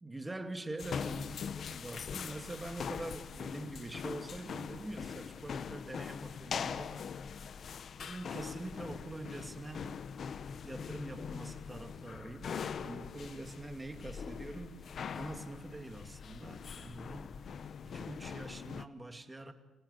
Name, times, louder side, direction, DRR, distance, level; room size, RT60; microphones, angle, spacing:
voice 1, 0.0-7.1 8.0-9.9 10.6-14.8 15.1-17.4 17.8-19.5, right 2 dB, 15° right, 2.5 m, -45 dB
sound 1, 0.8-18.8, left 6 dB, 55° left, 0.9 m, -42 dB
29.5 x 18.5 x 8.3 m
cardioid pair, 90°, 0 cm